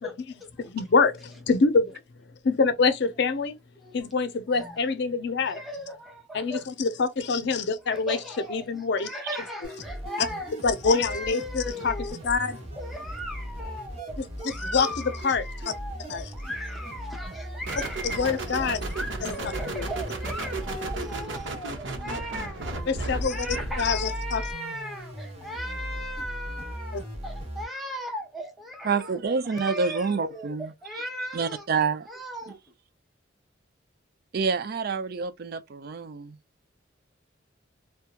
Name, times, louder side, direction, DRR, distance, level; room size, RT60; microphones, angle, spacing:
voice 1, 0.0-0.6 1.1-1.2 3.8-4.1 4.5-6.7 7.8-10.5 10.8-31.7 32.1-32.6, equal, ahead, 0.8 m, -38 dB
voice 2, 0.6-2.0 2.4-3.6 3.9-5.6 6.3-8.2 8.5-9.1 10.2-10.3 10.6-12.6 14.4-15.4 16.1-16.3 18.0-18.8 19.2-19.4 19.7-19.9 22.9-23.5 23.8-24.4 26.9-27.0, left 4 dB, 60° left, 0.5 m, -25 dB
sound 1, 9.6-27.6, equal, 35° right, 1.0 m, -38 dB
sound 2, 17.7-24.0, right 2 dB, 80° right, 0.9 m, -34 dB
voice 3, 28.8-30.7 31.3-32.2 34.3-36.4, right 5 dB, 55° right, 0.4 m, -27 dB
2.9 x 2.2 x 2.2 m
head